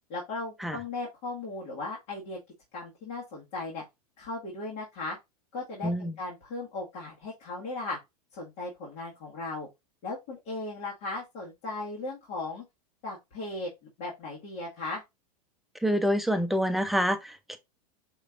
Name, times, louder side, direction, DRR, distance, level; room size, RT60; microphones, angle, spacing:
voice 1, 0.1-2.4 2.7-3.8 4.2-5.2 5.5-8.0 8.3-9.7 10.0-12.6 13.0-15.0, left 2 dB, 55° left, 1.8 m, -37 dB
voice 2, 5.8-6.1 15.8-17.6, equal, ahead, 0.5 m, -27 dB
5.3 x 3.2 x 2.5 m
hypercardioid pair, 105°, 20 cm